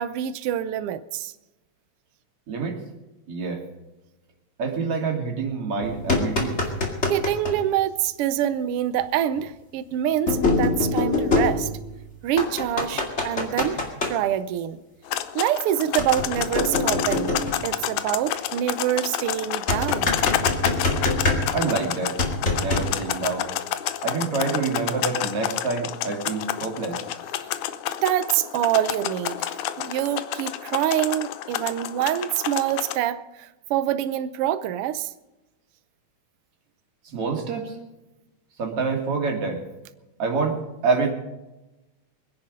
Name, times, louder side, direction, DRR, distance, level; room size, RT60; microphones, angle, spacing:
voice 1, 0.0-1.3 7.1-11.7 12.2-13.8 14.1-14.8 15.3-17.3 17.6-20.1 28.0-35.1, right 11 dB, 85° right, 1.3 m, -25 dB
voice 2, 2.5-2.8 3.3-3.6 4.6-6.6 21.5-22.2 22.6-23.5 24.0-27.0 37.1-37.8 38.6-39.6 40.2-41.1, right 4 dB, 50° right, 3.3 m, -27 dB
sound 1, 5.8-7.6 9.0-9.1 10.3-12.0 12.4-14.1 16.0-17.7 19.7-21.8 22.2-22.9, left 2 dB, 25° left, 2.2 m, -24 dB
sound 2, 15.1-33.0, left 12 dB, 85° left, 2.2 m, -29 dB
22.5 x 10.5 x 5.2 m
omnidirectional pair, 3.4 m